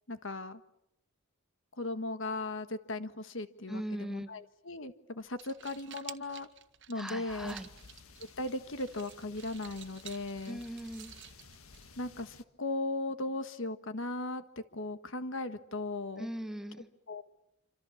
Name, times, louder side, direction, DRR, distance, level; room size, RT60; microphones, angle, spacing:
voice 1, 0.1-0.6 1.8-6.5 6.9-7.6 8.4-10.6 12.0-14.4 14.7-16.3 17.1-17.2, left 2 dB, 60° left, 10 dB, 1.5 m, -37 dB
voice 2, 3.7-4.3 7.0-7.7 10.5-11.1 16.2-16.9, right 1 dB, ahead, 7 dB, 1.8 m, -39 dB
sound 1, 5.2-12.2, right 11 dB, 60° right, 1.6 m, -52 dB
sound 2, 7.3-12.4, left 4 dB, 80° left, 1.6 m, -56 dB
27.0 x 26.0 x 7.2 m, 0.78 s
head